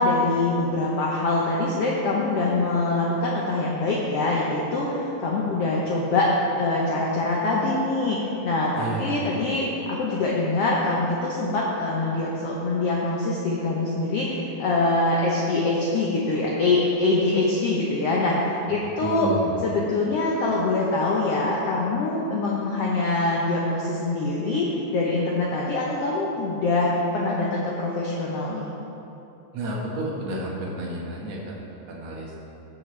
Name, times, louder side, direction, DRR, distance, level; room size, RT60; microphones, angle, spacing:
voice 1, 0.0-19.3 19.6-24.7 24.9-28.7, left 2 dB, 65° left, -4 dB, 1.6 m, -24 dB
voice 2, 8.8-9.2 19.0-19.5 29.5-32.4, right 2 dB, 55° right, -3 dB, 2.5 m, -31 dB
17.5 x 6.3 x 3.3 m, 2.9 s
omnidirectional pair, 3.5 m